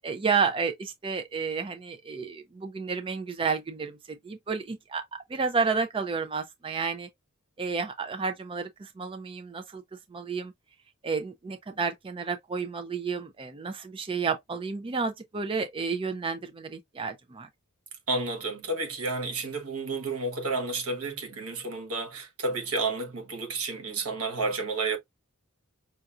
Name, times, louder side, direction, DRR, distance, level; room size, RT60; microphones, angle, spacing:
voice 1, 0.0-5.0 5.3-7.1 7.6-9.8 10.1-10.5 11.0-17.5, right 5 dB, 25° right, 0.4 m, -31 dB
voice 2, 18.1-25.0, right 3 dB, 85° right, 1.3 m, -31 dB
5.6 x 2.5 x 2.4 m
head